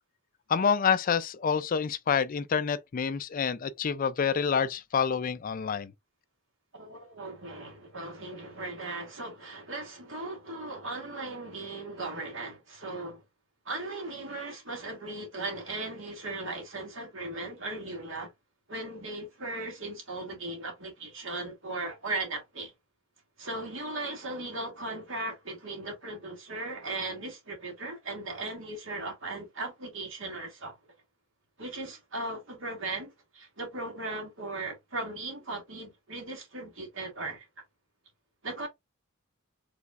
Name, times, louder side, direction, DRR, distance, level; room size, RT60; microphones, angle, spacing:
voice 1, 0.5-5.9, left 6 dB, 40° left, 0.4 m, -27 dB
voice 2, 6.7-13.2 13.7-18.3 18.7-22.7 23.4-30.8 31.6-37.5 38.4-38.7, right 2 dB, 65° right, 2.1 m, -37 dB
5.0 x 3.4 x 2.4 m
head